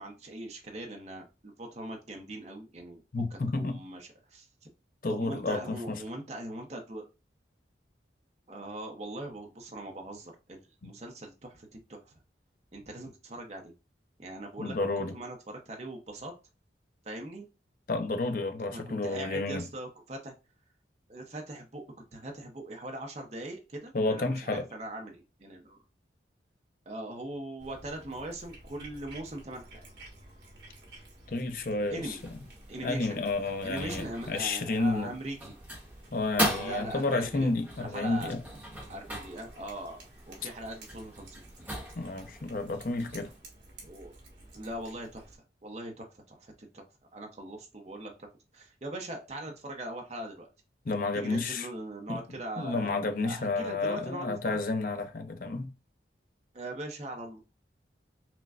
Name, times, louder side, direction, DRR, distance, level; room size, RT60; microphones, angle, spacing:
voice 1, 0.0-3.0 3.3-4.5 5.1-7.1 8.5-12.1 12.7-13.7 14.2-16.3 17.0-17.5 18.7-20.3 21.1-21.8 22.1-25.8 26.9-29.9 31.9-32.2 32.7-33.2 33.6-35.4 36.6-37.5 37.8-38.3 38.9-40.0 40.3-41.4 43.8-44.1 44.5-45.4 45.6-46.8 47.1-48.3 48.5-50.5 51.1-52.9 53.2-54.6 56.5-57.4, right 1 dB, 35° right, 0.7 m, -41 dB
voice 2, 3.1-3.8 5.0-6.0 10.8-10.9 14.6-15.1 17.9-19.7 23.9-24.6 31.3-32.2 32.8-35.1 36.1-38.4 42.0-43.3 50.9-51.7 52.1-52.2 52.6-55.7, left 3 dB, 50° left, 0.5 m, -31 dB
Cat, 27.6-45.4, right 1 dB, 75° right, 1.5 m, -53 dB
sound 1, 32.1-43.4, right 1 dB, 10° right, 1.0 m, -39 dB
5.9 x 2.2 x 2.4 m
head